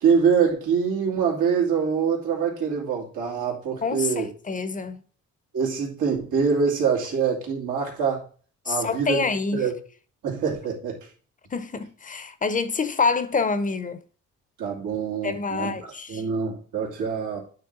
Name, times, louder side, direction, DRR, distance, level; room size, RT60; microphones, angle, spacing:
voice 1, 0.0-4.3 5.5-8.2 8.7-9.3 9.5-9.7 10.2-11.0 14.6-15.7 16.1-17.4, right 6 dB, 85° right, 2.2 m, -24 dB
voice 2, 3.8-5.0 8.7-9.7 11.5-14.0 15.2-16.2, left 4 dB, 25° left, 0.7 m, -26 dB
8.9 x 3.3 x 3.8 m
cardioid pair, 90°, 30 cm